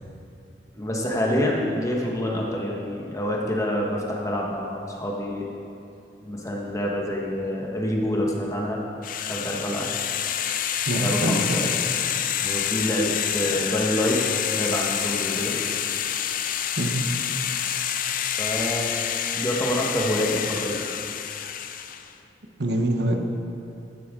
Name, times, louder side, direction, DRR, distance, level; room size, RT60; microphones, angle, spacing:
voice 1, 0.7-5.4 6.2-8.8 9.3-9.9 10.9-11.7 12.4-14.2 14.5-15.5 18.4-18.9 19.3-20.8, left 1 dB, 20° left, -2 dB, 1.4 m, -27 dB
sound 1, 9.0-22.1, left 9 dB, 50° left, 0.5 m, -28 dB
voice 2, 10.9-11.6 16.8-17.2 22.6-23.3, right 1 dB, 65° right, 3 dB, 0.9 m, -25 dB
14.0 x 9.0 x 3.8 m, 2.6 s
head